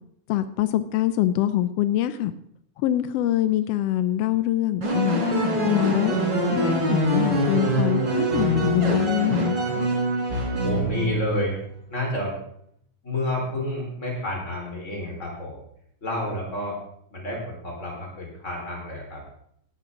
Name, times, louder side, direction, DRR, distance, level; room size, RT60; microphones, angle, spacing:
voice 1, 0.3-2.3 2.8-5.2 5.6-6.2 6.5-9.6, left 13 dB, 85° left, 12 dB, 1.4 m, -24 dB
sound 1, 4.8-11.5, right 1 dB, 35° right, 4.1 m, -24 dB
voice 2, 10.6-11.6 11.9-12.3 13.0-15.5 16.0-16.8 17.1-19.2, left 1 dB, 25° left, -2 dB, 4.5 m, -29 dB
17.5 x 11.5 x 3.8 m, 0.68 s
omnidirectional pair, 3.4 m